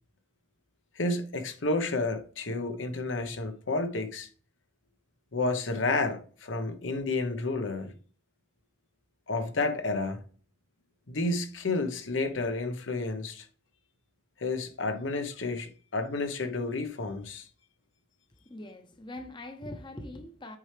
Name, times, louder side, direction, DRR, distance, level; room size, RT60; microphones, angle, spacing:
voice 1, 1.0-4.3 5.3-7.9 9.3-10.2 11.1-13.5 14.4-17.5, left 3 dB, 85° left, 1.0 m, -31 dB
voice 2, 18.4-20.6, left 1 dB, 25° left, 0.7 m, -42 dB
8.5 x 4.4 x 3.3 m
head